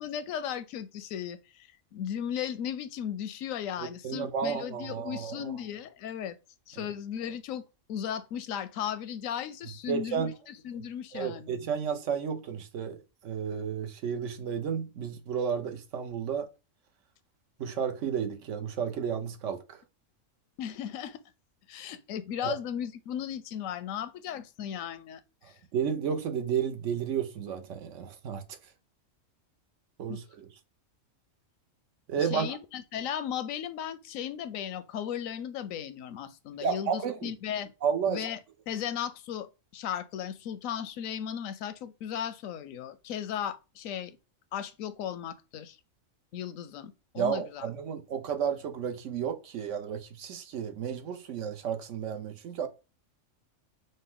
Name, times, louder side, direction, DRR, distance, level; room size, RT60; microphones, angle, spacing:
voice 1, 0.0-1.7 1.9-6.4 6.7-7.6 7.9-11.5 20.6-21.2 21.7-25.2 30.1-30.2 32.2-37.7 38.1-38.4 38.7-39.5 39.7-44.2 44.5-45.8 46.3-47.7, left 9 dB, 85° left, 1.0 m, -36 dB
voice 2, 3.8-5.5 6.8-6.9 9.9-10.3 11.1-13.0 13.2-16.5 17.6-19.8 22.4-22.6 25.7-28.4 30.0-30.5 32.1-32.6 36.6-37.3 37.8-38.2 47.2-52.7, right 7 dB, 70° right, 1.0 m, -32 dB
5.2 x 2.2 x 3.6 m
omnidirectional pair, 1.4 m